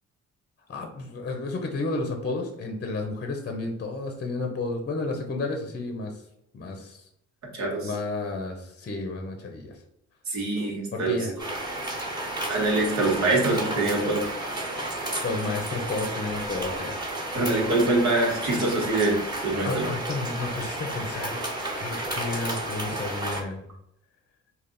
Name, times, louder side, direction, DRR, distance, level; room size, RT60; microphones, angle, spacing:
voice 1, 0.7-6.2 6.5-7.1 7.8-9.8 10.9-11.4 15.0-17.0 19.6-21.4 21.8-23.6, left 3 dB, 35° left, 3 dB, 0.7 m, -32 dB
voice 2, 7.5-7.9 10.3-11.3 12.5-14.2 17.3-19.9, right 2 dB, 65° right, -1 dB, 1.5 m, -24 dB
sound 1, 11.4-23.4, right 1 dB, 15° right, 1.3 m, -32 dB
3.4 x 2.4 x 3.8 m, 0.78 s
cardioid pair, 90°, 30 cm